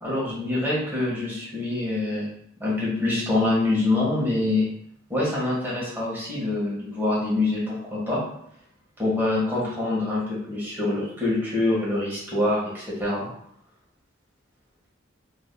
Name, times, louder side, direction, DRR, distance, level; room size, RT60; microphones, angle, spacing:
voice 1, 0.0-2.3 2.6-4.7 5.1-8.2 9.0-13.3, left 2 dB, 10° right, -8 dB, 1.4 m, -25 dB
3.6 x 3.1 x 2.2 m, 0.70 s
head